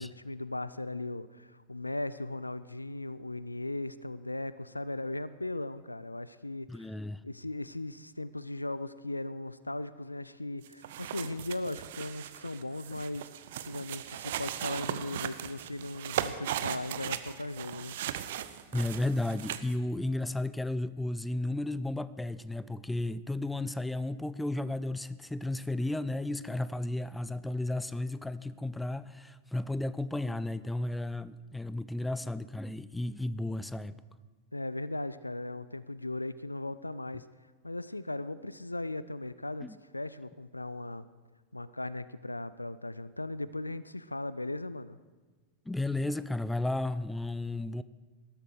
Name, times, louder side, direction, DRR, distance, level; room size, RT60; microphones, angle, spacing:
voice 1, 0.0-6.9 7.2-13.3 13.6-18.0 34.5-37.2 37.6-41.1 41.5-45.0, left 2 dB, 85° left, 16 dB, 0.4 m, -38 dB
voice 2, 6.7-7.2 18.7-34.0 39.6-39.8 45.7-47.8, left 2 dB, 5° left, 16 dB, 0.5 m, -33 dB
sound 1, 10.6-19.7, right 11 dB, 55° right, 0.7 m, -38 dB
19.0 x 12.5 x 4.8 m, 1.3 s
figure-of-eight pair, 90°, 0 cm